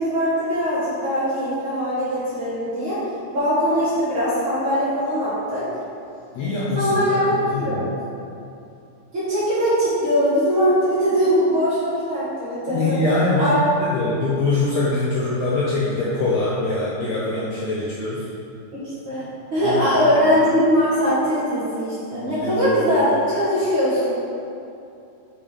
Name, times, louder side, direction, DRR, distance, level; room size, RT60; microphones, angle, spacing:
voice 1, 0.0-3.0 3.3-5.6 6.7-7.9 9.1-12.9 13.4-13.6 19.1-24.1, equal, 50° right, -11 dB, 1.8 m, -21 dB
voice 2, 6.3-7.9 12.7-18.3 19.6-19.8 22.3-23.0, left 2 dB, 85° left, -6 dB, 1.5 m, -23 dB
6.7 x 5.1 x 3.7 m, 2.6 s
omnidirectional pair, 4.0 m